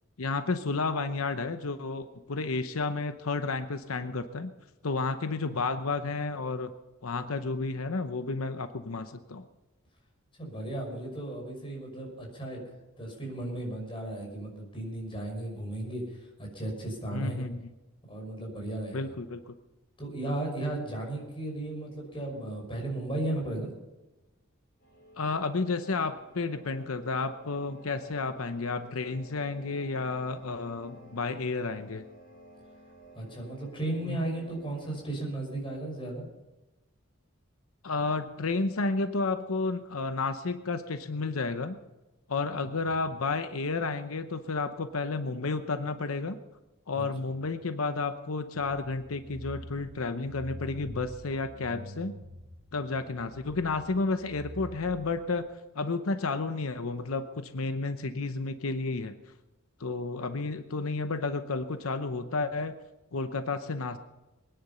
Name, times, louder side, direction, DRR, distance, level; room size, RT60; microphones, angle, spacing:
voice 1, 0.2-4.5 4.8-6.7 7.0-9.5 17.1-17.7 18.9-19.6 25.2-32.0 34.0-34.2 37.8-41.8 42.3-46.4 46.9-52.1 52.7-55.5 55.7-59.1 59.8-62.7 63.1-64.0, left 3 dB, 90° left, 9 dB, 0.9 m, -31 dB
voice 2, 10.4-12.6 13.0-17.4 18.1-19.1 20.0-23.7 33.2-36.3 46.9-47.0, right 1 dB, 25° left, 0 dB, 5.9 m, -35 dB
sound 1, 24.8-35.0, right 1 dB, 45° left, 5.9 m, -53 dB
sound 2, 48.6-55.5, equal, 75° right, 1.9 m, -46 dB
23.0 x 10.0 x 5.6 m, 1.1 s
head